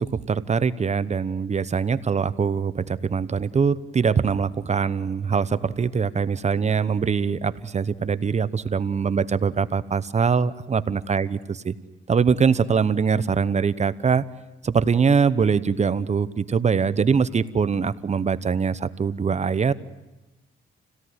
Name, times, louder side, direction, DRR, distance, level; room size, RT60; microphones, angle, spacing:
voice 1, 0.0-11.7 12.1-14.2 14.6-19.7, right 6 dB, 35° right, 15 dB, 1.0 m, -23 dB
28.5 x 17.5 x 9.6 m, 1.1 s
cardioid pair, 90°, 20 cm